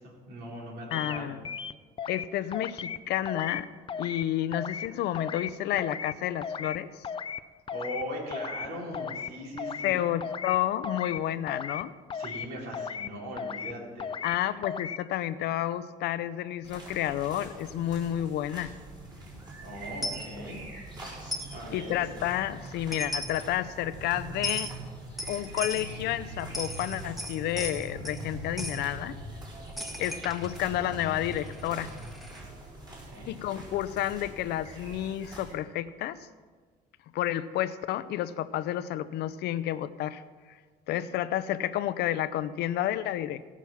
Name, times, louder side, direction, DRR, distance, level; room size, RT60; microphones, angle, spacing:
voice 1, 0.0-1.4 7.7-10.1 12.1-14.4 19.6-21.0 21.5-22.0 33.0-33.3, equal, 80° right, -4 dB, 4.2 m, -40 dB
voice 2, 0.9-1.4 2.1-3.7 4.0-7.0 9.8-11.9 14.2-18.7 21.7-24.7 25.3-29.2 30.0-31.9 33.3-36.2 37.1-40.2 40.9-43.5, left 12 dB, 75° left, 14 dB, 0.6 m, -30 dB
sound 1, 0.9-1.2 1.4-2.3 2.5-3.0 3.3-3.6 3.9-4.2 4.5-4.9 5.1-5.5 5.8-6.1 6.4-6.8 7.0-7.4 7.7-8.0 8.3-8.7 8.9-9.3 9.6-9.9 10.2-10.6 10.8-11.2 11.5-11.8 12.1-12.5 12.7-13.1 13.4-13.7 14.0-14.4 14.6-15.0, left 7 dB, 30° left, 0.4 m, -36 dB
sound 2, 16.6-35.5, right 1 dB, 25° right, 4.4 m, -43 dB
Coin (dropping), 20.0-20.3 21.3-21.6 22.7-22.8 22.9-23.5 24.4-24.7 25.2-25.9 26.4-28.2 28.6-28.8 29.8-32.4, left 1 dB, ahead, 1.4 m, -37 dB
17.0 x 6.1 x 5.7 m, 1.5 s
cardioid pair, 110°, 17 cm